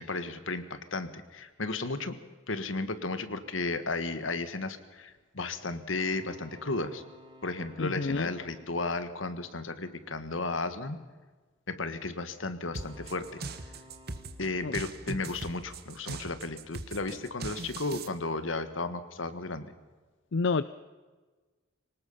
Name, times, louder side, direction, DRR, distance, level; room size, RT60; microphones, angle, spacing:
voice 1, 0.0-2.1 2.5-7.0 7.4-11.0 11.7-13.4 14.4-19.7, left 3 dB, 85° left, 11 dB, 1.7 m, -34 dB
sound 1, 5.9-10.3 12.6-15.9, equal, 25° right, 3.8 m, -57 dB
voice 2, 7.8-8.3 14.6-14.7 20.3-20.6, left 4 dB, 65° left, 14 dB, 0.5 m, -28 dB
sound 2, 12.7-18.1, right 3 dB, 55° right, 1.4 m, -40 dB
24.0 x 19.5 x 5.6 m, 1.3 s
head